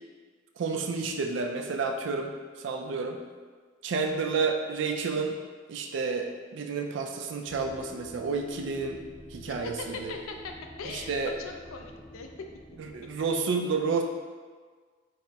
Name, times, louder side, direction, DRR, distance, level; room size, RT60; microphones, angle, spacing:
voice 1, 0.6-3.2 3.8-5.4 5.7-9.0 9.3-10.1 10.9-11.3 12.8-14.0, right 4 dB, 60° right, 4 dB, 0.3 m, -30 dB
sound 1, 7.5-13.3, right 1 dB, 20° left, 0.4 m, -48 dB
voice 2, 9.5-10.5 10.8-12.3, left 4 dB, 90° left, 3 dB, 0.4 m, -40 dB
4.0 x 2.0 x 3.3 m, 1.5 s
head